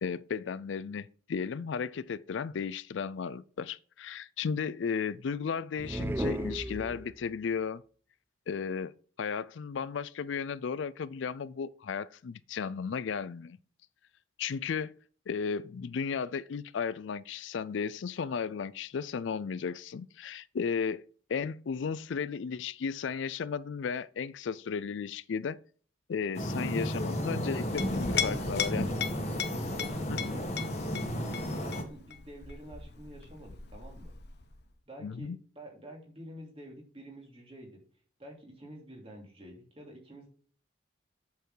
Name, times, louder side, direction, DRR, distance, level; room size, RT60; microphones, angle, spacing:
voice 1, 0.0-7.8 8.5-8.9 9.2-13.6 14.4-14.9 15.3-21.0 21.3-25.6 26.1-28.9 30.1-30.2 35.0-35.4, left 6 dB, 70° left, 0.4 m, -34 dB
sound 1, 5.8-7.4, right 1 dB, 10° right, 0.3 m, -34 dB
sound 2, 26.3-31.8, equal, 35° left, 1.7 m, -33 dB
Chink clink, 27.5-34.6, left 8 dB, 55° left, 1.0 m, -38 dB
voice 2, 28.1-28.8 29.5-34.1 34.9-37.8 38.2-40.3, equal, 30° right, 2.9 m, -48 dB
8.2 x 6.7 x 3.9 m
head